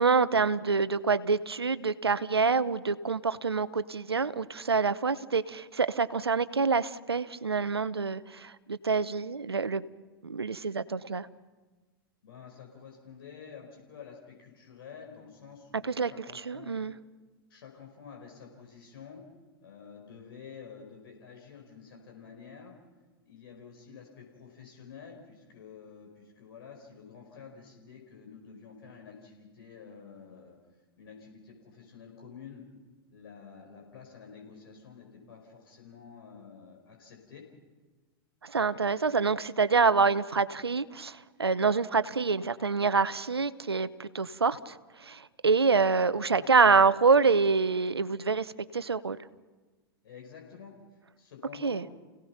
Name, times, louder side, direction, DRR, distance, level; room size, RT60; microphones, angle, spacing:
voice 1, 0.0-9.8 10.2-11.3 15.8-16.9 38.4-49.2 51.6-51.8, right 4 dB, 90° right, 16 dB, 0.8 m, -26 dB
voice 2, 12.2-16.8 17.5-19.2 19.6-22.7 23.2-30.6 31.0-32.6 33.1-37.4 46.0-46.5 50.0-50.7 51.2-51.8, left 6 dB, 70° left, 1 dB, 5.1 m, -49 dB
30.0 x 17.5 x 5.9 m, 1.3 s
figure-of-eight pair, 100°, 13 cm